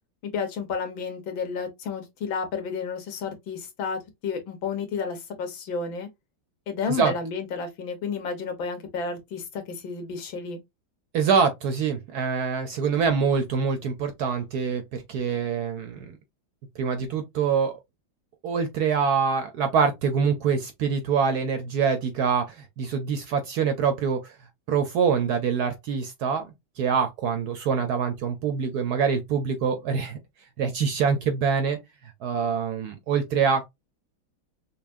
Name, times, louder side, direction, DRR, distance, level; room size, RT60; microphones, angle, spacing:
voice 1, 0.2-6.1 6.7-10.6, left 5 dB, 75° left, 1.8 m, -31 dB
voice 2, 11.1-16.2 16.8-17.8 18.4-24.3 24.7-26.5 26.8-30.2 30.6-31.8 32.2-33.6, right 6 dB, 70° right, 1.0 m, -25 dB
5.6 x 2.2 x 2.5 m
omnidirectional pair, 2.1 m